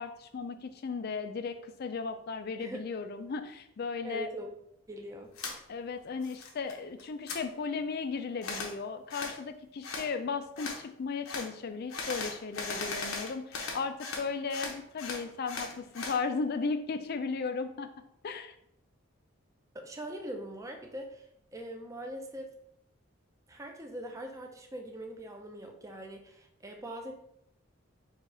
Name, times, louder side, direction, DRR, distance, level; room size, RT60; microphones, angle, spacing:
voice 1, 0.0-4.3 5.7-17.9 18.2-18.6, left 4 dB, 50° left, 9 dB, 0.4 m, -36 dB
voice 2, 4.0-4.5 4.9-5.3 19.7-21.2 21.5-22.5 23.5-27.1, right 1 dB, 15° right, 3 dB, 0.5 m, -42 dB
sound 1, 5.4-5.6 6.0-6.7 7.0-7.4 8.4-8.7 9.1-9.4 9.8-10.1 10.6-10.8 11.3-11.5 11.9-14.2 14.5-16.2, left 3 dB, 85° left, 0.9 m, -38 dB
4.7 x 2.4 x 4.2 m, 0.74 s
head